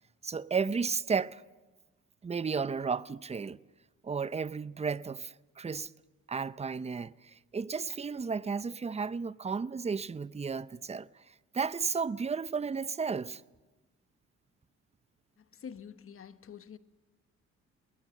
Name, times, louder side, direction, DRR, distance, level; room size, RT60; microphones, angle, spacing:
voice 1, 0.2-1.4 2.2-3.6 4.0-5.9 6.3-11.1 11.5-13.4, right 5 dB, 20° right, 0.6 m, -33 dB
voice 2, 15.4-16.8, left 7 dB, 45° left, 1.1 m, -47 dB
22.0 x 18.5 x 7.6 m
cardioid pair, 90°, 30 cm